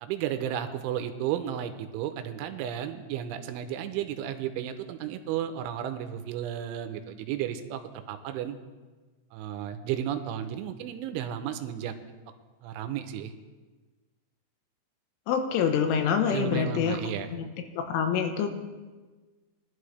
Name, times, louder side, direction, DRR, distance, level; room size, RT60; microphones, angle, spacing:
voice 1, 0.0-7.8 8.1-8.6 9.3-11.9 12.6-13.3 16.3-17.3, right 10 dB, 85° right, 7 dB, 3.1 m, -33 dB
voice 2, 15.3-17.0 17.3-17.5 17.8-18.5, left 7 dB, 80° left, 5 dB, 3.5 m, -26 dB
20.5 x 11.5 x 3.3 m, 1.3 s
omnidirectional pair, 5.6 m